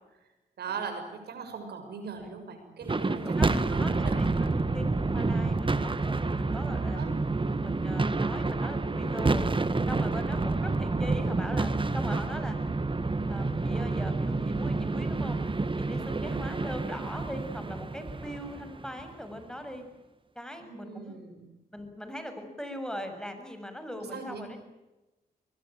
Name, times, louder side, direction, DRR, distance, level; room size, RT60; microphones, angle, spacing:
voice 1, 0.6-4.1 6.9-7.1 10.1-10.4 16.2-16.5 20.6-21.5 24.0-24.5, right 5 dB, 85° right, 6 dB, 6.7 m, -40 dB
sound 1, 2.8-19.2, right 3 dB, 30° right, 1.8 m, -29 dB
voice 2, 2.9-7.2 7.6-9.5 9.9-12.6 13.3-15.4 15.8-19.9 20.4-21.2 21.7-24.6, equal, 5° left, 7 dB, 7.1 m, -40 dB
24.0 x 21.0 x 9.1 m, 1.0 s
cardioid pair, 60°, 16 cm